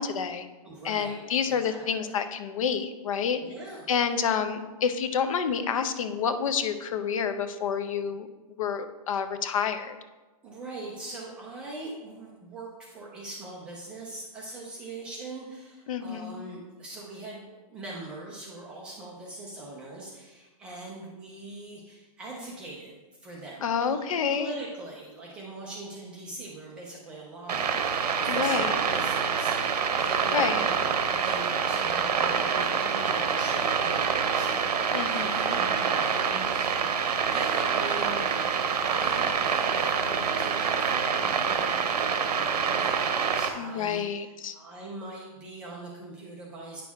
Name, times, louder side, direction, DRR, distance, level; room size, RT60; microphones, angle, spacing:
voice 1, 0.0-0.5 0.8-3.4 3.9-8.3 8.6-10.0 15.9-16.4 23.6-24.5 28.3-28.8 30.3-30.7 34.9-35.6 43.6-44.5, left 7 dB, 55° left, 10 dB, 0.7 m, -29 dB
voice 2, 0.6-2.2 3.4-3.9 4.3-4.4 10.4-24.0 24.3-30.7 31.0-46.8, right 2 dB, 5° right, -4 dB, 0.3 m, -42 dB
sound 1, 27.5-43.5, right 6 dB, 85° right, 1.0 m, -26 dB
9.1 x 6.1 x 3.5 m, 1.2 s
hypercardioid pair, 175°, 20 cm